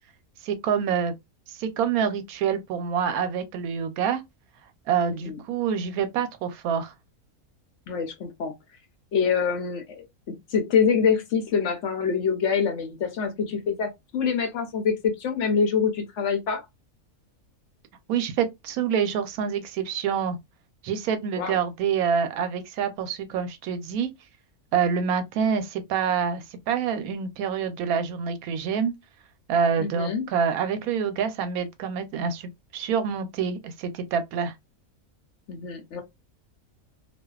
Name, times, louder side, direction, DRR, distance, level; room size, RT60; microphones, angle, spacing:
voice 1, 0.4-1.1 1.5-4.2 4.9-6.9 18.1-20.4 20.8-24.1 24.7-28.9 29.5-34.5, right 7 dB, 85° right, 1.0 m, -26 dB
voice 2, 5.1-5.4 7.9-8.5 9.1-10.1 10.5-16.6 21.4-21.6 29.8-30.3 35.5-36.0, left 6 dB, 65° left, 0.8 m, -25 dB
2.5 x 2.2 x 2.2 m
omnidirectional pair, 1.5 m